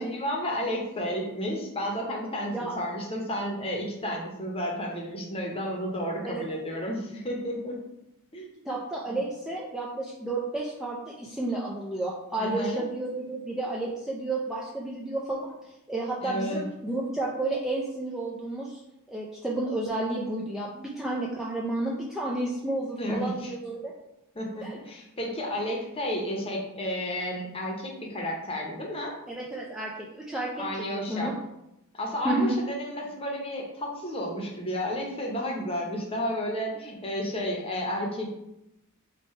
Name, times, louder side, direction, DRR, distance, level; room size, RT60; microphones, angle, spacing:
voice 1, 0.0-7.8 8.3-8.6 9.1-9.2 12.4-12.8 16.2-16.6 23.0-23.5 24.3-29.1 30.6-31.3 31.9-38.3, equal, 25° left, -1 dB, 0.8 m, -32 dB
voice 2, 8.7-15.5 15.9-18.8 19.1-23.9 24.6-24.8 29.3-30.5 30.8-31.4 32.2-32.6, right 2 dB, 5° right, -5 dB, 0.4 m, -31 dB
3.1 x 2.8 x 4.3 m, 0.86 s
head